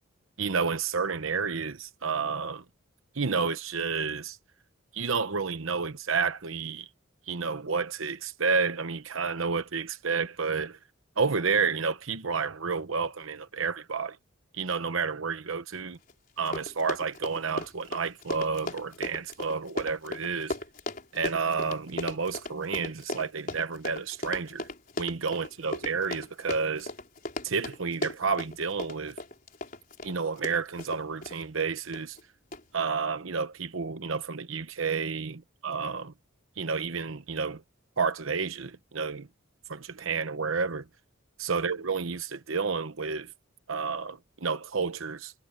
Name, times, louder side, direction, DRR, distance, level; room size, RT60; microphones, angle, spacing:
voice 1, 0.4-2.6 3.1-4.4 4.9-6.9 7.3-10.8 11.2-14.2 14.5-16.0 16.4-20.5 21.1-24.7 25.0-26.9 27.4-29.2 30.0-32.2 32.7-36.1 36.6-37.6 38.0-39.3 39.7-40.8 41.4-43.3 43.7-45.3, right 5 dB, 75° right, 1.0 m, -30 dB
Run, 16.1-16.2 16.4-31.4 31.9-32.2 32.5-32.6, left 1 dB, 40° left, 5.0 m, -37 dB
head